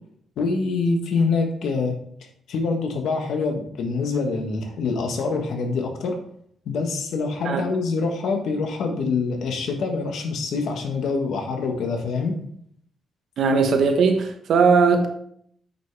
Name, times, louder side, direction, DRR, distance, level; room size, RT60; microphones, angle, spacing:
voice 1, 0.4-2.0 2.5-6.2 6.6-12.3, left 4 dB, 80° left, 1.4 m, -25 dB
voice 2, 13.4-15.1, right 5 dB, 65° right, 1.1 m, -18 dB
8.7 x 5.7 x 3.4 m
cardioid pair, 150°, 0 cm